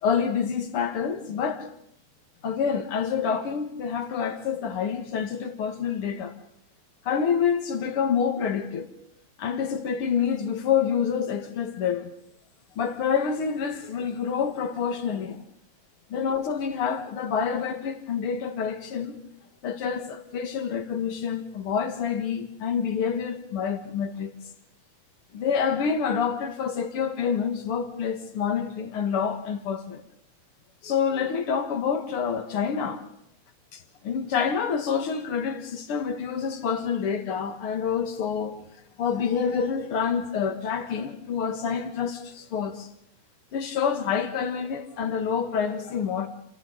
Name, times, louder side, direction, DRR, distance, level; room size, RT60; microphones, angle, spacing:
voice 1, 0.0-1.7 2.4-6.3 7.1-8.9 9.4-12.1 12.8-15.4 16.1-19.2 19.6-24.3 25.3-30.0 30.8-33.0 33.7-38.6 39.0-42.9 43.5-46.3, left 7 dB, 50° left, 2.4 m, -27 dB
28.0 x 28.0 x 4.1 m
omnidirectional pair, 3.4 m